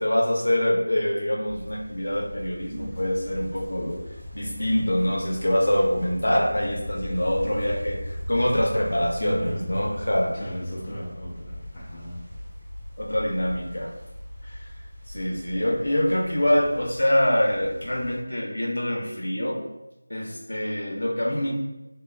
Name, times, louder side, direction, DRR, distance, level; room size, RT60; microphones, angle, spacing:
voice 1, 0.0-4.0 4.3-10.3 13.0-13.9 14.4-14.7 15.1-19.7 20.1-21.6, left 1 dB, 80° left, 0 dB, 0.6 m, -25 dB
sound 1, 1.5-18.2, left 1 dB, 30° right, 0.8 m, -42 dB
sound 2, 2.7-10.2, equal, 55° right, 1.1 m, -38 dB
voice 2, 9.2-9.7 10.3-12.3, equal, 25° left, -8 dB, 0.4 m, -35 dB
3.3 x 2.1 x 2.3 m, 0.99 s
figure-of-eight pair, 175°, 0 cm